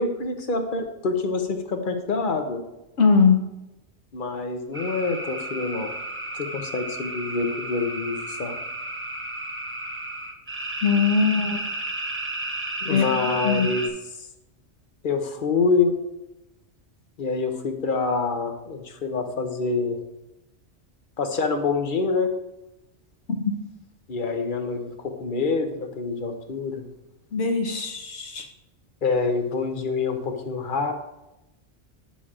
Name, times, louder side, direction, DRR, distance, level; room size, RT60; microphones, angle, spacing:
voice 1, 0.0-2.6 4.1-5.9 6.3-8.5 12.9-13.8 14.2-14.3 15.0-15.9 17.2-20.0 21.2-22.3 24.1-26.8 29.0-30.9, left 4 dB, 50° left, 5 dB, 0.8 m, -26 dB
voice 2, 3.0-3.4 10.8-11.6 12.8-13.7 23.4-23.5 27.3-28.5, left 5 dB, 75° left, 4 dB, 1.2 m, -21 dB
sound 1, 4.7-13.9, right 2 dB, 15° right, 0.5 m, -33 dB
10.0 x 7.1 x 2.4 m, 0.94 s
omnidirectional pair, 1.2 m